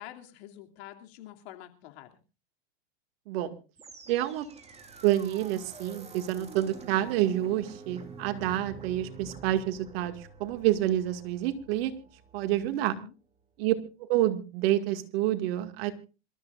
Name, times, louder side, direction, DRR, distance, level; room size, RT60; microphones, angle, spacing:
voice 1, 0.0-2.2 12.7-13.1, left 13 dB, 70° left, 4 dB, 2.8 m, -47 dB
sound 1, 3.8-12.9, right 4 dB, 20° right, 2.7 m, -48 dB
voice 2, 4.1-4.5 5.0-11.9 12.3-13.0 13.6-13.7 14.0-15.9, right 13 dB, 65° right, 9 dB, 2.2 m, -28 dB
26.5 x 13.5 x 2.5 m, 0.32 s
hypercardioid pair, 110°, 32 cm